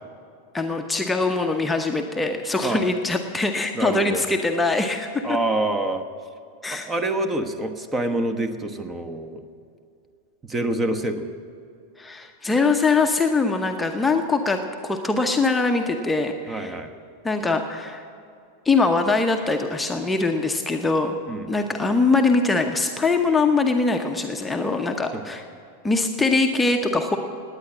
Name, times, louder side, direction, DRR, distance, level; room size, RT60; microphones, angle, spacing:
voice 1, 0.5-5.2 6.6-6.9 12.0-16.7 17.2-18.0 18.6-21.2 21.5-25.4 25.8-27.2, left 3 dB, 10° left, 4 dB, 0.9 m, -22 dB
voice 2, 3.7-4.2 5.2-6.0 6.7-9.4 10.4-11.3 16.5-16.9 21.3-21.5 25.1-25.2, right 2 dB, 15° right, 8 dB, 1.1 m, -26 dB
18.0 x 9.8 x 7.4 m, 2.4 s
figure-of-eight pair, 90°, 0 cm